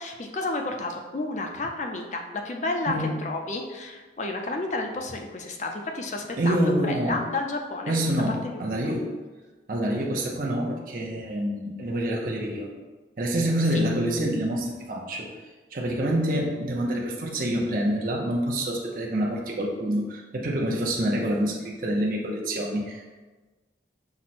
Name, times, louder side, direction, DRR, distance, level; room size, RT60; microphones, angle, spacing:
voice 1, 0.0-7.9 8.4-8.6 13.7-13.8, left 2 dB, 40° left, 3 dB, 0.4 m, -31 dB
voice 2, 2.9-3.2 6.4-7.2 7.9-9.1 9.7-12.7 13.2-15.3 15.7-23.0, right 1 dB, 50° right, -2 dB, 0.6 m, -27 dB
5.9 x 2.1 x 4.2 m, 1.3 s
head